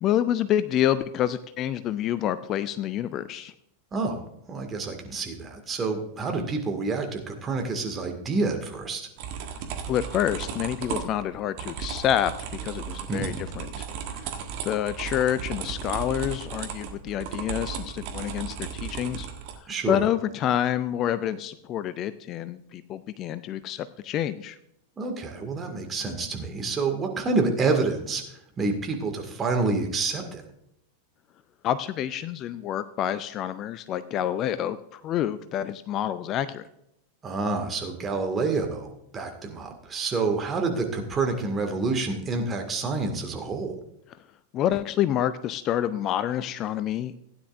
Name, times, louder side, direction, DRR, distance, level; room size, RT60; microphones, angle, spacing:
voice 1, 0.0-3.5 9.9-12.3 12.6-14.3 14.6-19.3 19.9-24.6 31.6-36.7 44.5-47.2, left 11 dB, 35° left, 14 dB, 0.4 m, -28 dB
voice 2, 4.5-9.1 13.1-13.4 19.7-20.0 25.0-28.2 28.6-30.4 37.2-43.8, right 3 dB, 20° right, 4 dB, 1.9 m, -28 dB
sound 1, 9.2-19.6, right 7 dB, 45° right, 1.4 m, -35 dB
16.0 x 9.7 x 2.5 m, 0.78 s
figure-of-eight pair, 90°, 0 cm